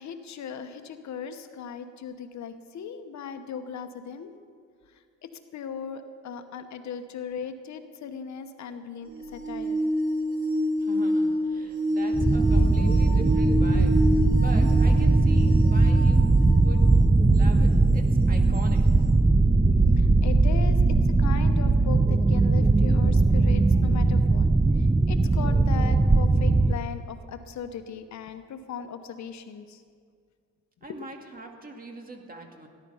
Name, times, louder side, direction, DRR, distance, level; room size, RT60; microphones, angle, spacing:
voice 1, 0.0-4.3 5.2-9.9 10.8-10.9 19.2-24.5 24.8-29.8 30.9-31.0, left 7 dB, 65° left, 8 dB, 1.1 m, -38 dB
sound 1, 9.1-16.7 17.4-17.5 18.5-18.6, equal, 70° right, 3.5 m, -28 dB
voice 2, 10.8-14.0 14.4-16.9 17.3-18.8 30.8-32.7, right 3 dB, 30° right, 3 dB, 2.1 m, -42 dB
sound 2, 12.1-26.8, right 3 dB, 10° right, 0.4 m, -20 dB
17.5 x 11.0 x 5.6 m, 2.1 s
cardioid pair, 90°, 30 cm